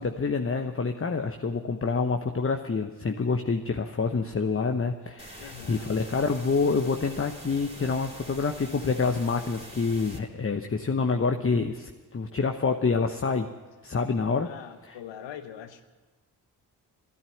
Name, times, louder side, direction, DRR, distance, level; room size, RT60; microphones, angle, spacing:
voice 1, 0.0-13.5 13.8-14.5 14.8-15.0, left 4 dB, 30° left, 5 dB, 1.1 m, -27 dB
sound 1, 5.2-10.2, right 1 dB, 15° right, 3.1 m, -45 dB
voice 2, 5.4-5.9 14.5-15.8, left 9 dB, 80° left, 9 dB, 1.2 m, -42 dB
12.5 x 11.0 x 10.0 m, 1.2 s
supercardioid pair, 40°, 43 cm